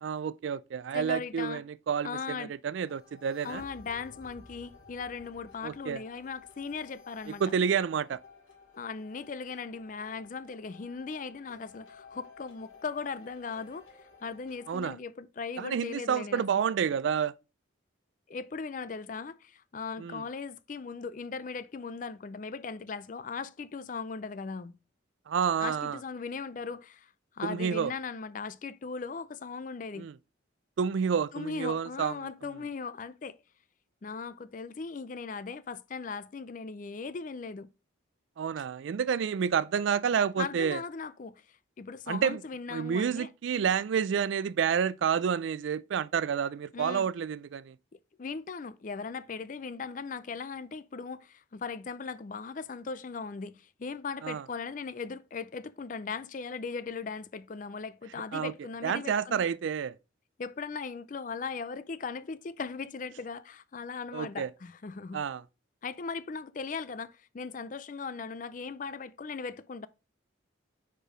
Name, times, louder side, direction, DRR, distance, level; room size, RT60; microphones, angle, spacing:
voice 1, 0.0-3.6 5.6-6.0 7.4-8.2 14.7-15.0 15.6-17.3 20.0-20.2 25.3-26.0 27.4-27.9 30.0-30.1 30.8-32.1 38.4-40.8 42.1-42.4 42.7-47.8 54.2-54.4 58.3-58.5 58.8-59.9 64.1-64.5 65.1-65.4, right 7 dB, 70° right, 0.3 m, -29 dB
voice 2, 0.9-1.6 2.0-2.6 3.4-7.4 8.8-13.9 14.2-16.6 18.3-24.7 25.6-30.1 31.3-33.4 34.0-37.7 40.4-43.3 46.7-47.1 48.2-59.5 60.4-65.2 65.8-69.9, left 5 dB, 40° left, 0.4 m, -38 dB
sound 1, 2.7-14.9, left 4 dB, 85° left, 2.5 m, -54 dB
5.0 x 4.4 x 5.0 m
head